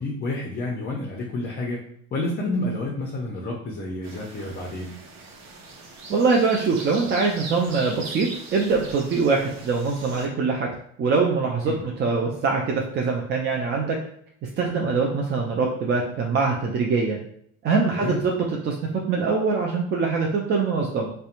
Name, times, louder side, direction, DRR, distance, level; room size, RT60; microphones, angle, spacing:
voice 1, 0.0-1.8 2.1-4.9 11.7-11.8 17.9-18.2, left 2 dB, 25° left, -1 dB, 0.5 m, -29 dB
sound 1, 4.0-10.3, right 3 dB, 60° right, 0.8 m, -40 dB
voice 2, 6.1-10.7 11.0-14.0 14.6-17.2 17.6-21.1, right 4 dB, 30° right, -1 dB, 0.3 m, -23 dB
2.7 x 2.2 x 2.5 m, 0.67 s
hypercardioid pair, 80°, 40 cm